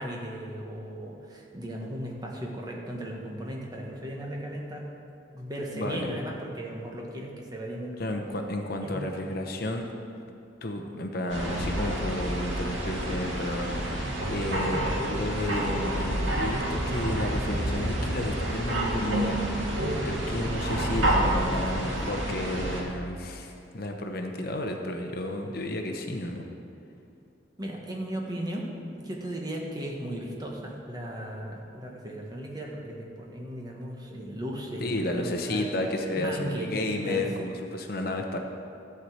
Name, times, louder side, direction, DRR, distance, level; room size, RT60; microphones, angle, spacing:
voice 1, 0.0-4.9 5.3-8.2 8.8-9.1 14.6-15.0 27.6-28.7 29.0-35.7 36.2-37.2, right 1 dB, 20° right, -1 dB, 1.3 m, -36 dB
voice 2, 5.7-6.1 8.0-9.9 10.6-19.4 20.0-26.5 34.8-38.4, left 1 dB, 50° left, 3 dB, 0.9 m, -32 dB
sound 1, 11.3-22.8, right 1 dB, 90° right, 2.1 m, -29 dB
13.5 x 4.8 x 7.9 m, 2.6 s
head